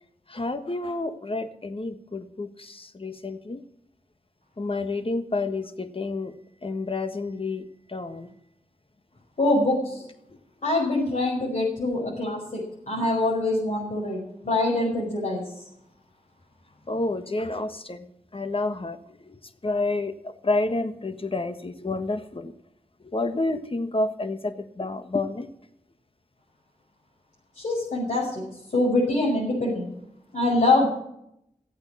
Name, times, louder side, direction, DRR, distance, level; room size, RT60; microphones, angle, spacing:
voice 1, 0.3-3.6 4.6-6.3 6.6-8.3 10.3-10.4 16.9-18.1 18.3-22.5 23.0-25.5, left 2 dB, 45° left, 9 dB, 1.5 m, -29 dB
voice 2, 9.4-10.0 10.6-15.4 27.6-28.4 28.7-29.9 30.3-30.9, left 2 dB, 70° left, -5 dB, 5.6 m, -24 dB
15.5 x 8.7 x 7.3 m, 0.77 s
cardioid pair, 45°, 13 cm